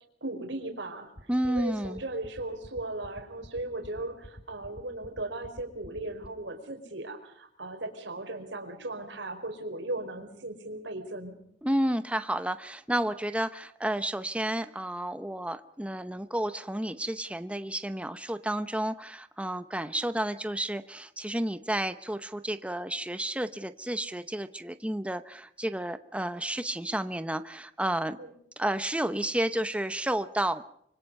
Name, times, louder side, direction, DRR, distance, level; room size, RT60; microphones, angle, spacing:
voice 1, 0.2-1.1 1.4-11.4 28.2-28.3, right 2 dB, 90° right, 5 dB, 4.6 m, -37 dB
sound 1, 1.2-6.3, equal, 35° left, 1.7 m, -46 dB
voice 2, 1.3-2.0 11.6-28.2 28.6-30.6, right 1 dB, 5° right, 10 dB, 0.9 m, -31 dB
25.5 x 25.0 x 5.4 m, 0.70 s
head